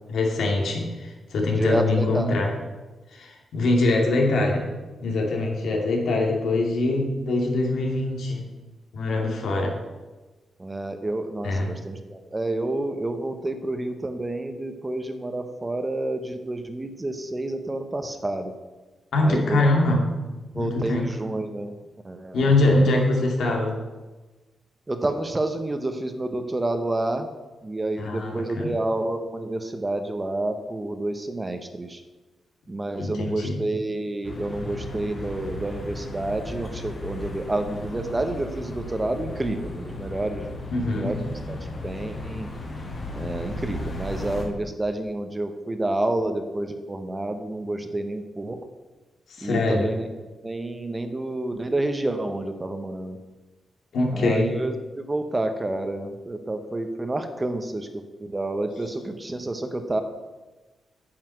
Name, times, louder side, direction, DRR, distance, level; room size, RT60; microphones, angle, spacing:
voice 1, 0.1-2.5 3.1-4.7 5.0-8.5 8.9-9.8 11.4-11.8 19.1-20.1 20.5-21.1 22.3-23.8 28.0-28.7 33.0-33.6 40.7-41.2 49.3-49.9 53.9-54.5, left 2 dB, 75° left, 1 dB, 2.4 m, -23 dB
voice 2, 1.6-2.5 10.6-18.5 19.2-19.6 20.5-21.7 22.0-22.9 24.9-27.3 27.6-32.0 32.7-41.6 41.8-42.5 43.1-48.6 49.4-50.1 50.4-53.2 54.1-60.0, right 2 dB, 15° right, 7 dB, 0.9 m, -29 dB
sound 1, 34.2-44.4, left 1 dB, 35° left, 2.1 m, -35 dB
9.3 x 5.8 x 7.7 m, 1.2 s
wide cardioid pair, 130°, 0 cm